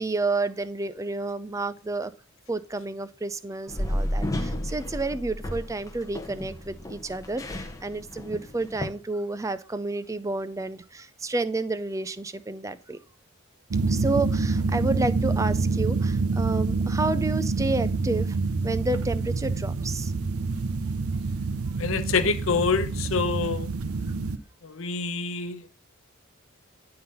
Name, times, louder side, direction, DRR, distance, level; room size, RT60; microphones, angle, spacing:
voice 1, 0.0-2.1 2.5-13.0 13.9-18.4 18.6-20.1, right 2 dB, 15° right, 0.4 m, -30 dB
sound 1, 3.7-8.9, equal, 15° left, 0.8 m, -32 dB
sound 2, 13.7-24.4, right 3 dB, 85° right, 0.6 m, -27 dB
voice 2, 21.8-23.7 24.6-25.7, left 4 dB, 70° left, 0.8 m, -26 dB
10.5 x 3.8 x 5.4 m
head